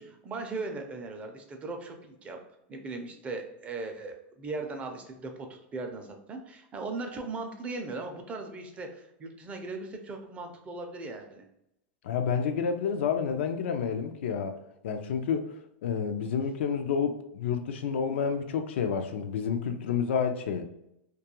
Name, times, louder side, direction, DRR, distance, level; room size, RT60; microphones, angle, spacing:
voice 1, 0.0-2.4 2.7-11.5, right 3 dB, 20° right, 4 dB, 0.4 m, -38 dB
voice 2, 12.0-14.6 14.8-15.5 15.8-20.6, left 6 dB, 80° left, 7 dB, 0.4 m, -29 dB
2.3 x 2.3 x 2.9 m, 0.81 s
supercardioid pair, 140°, 6 cm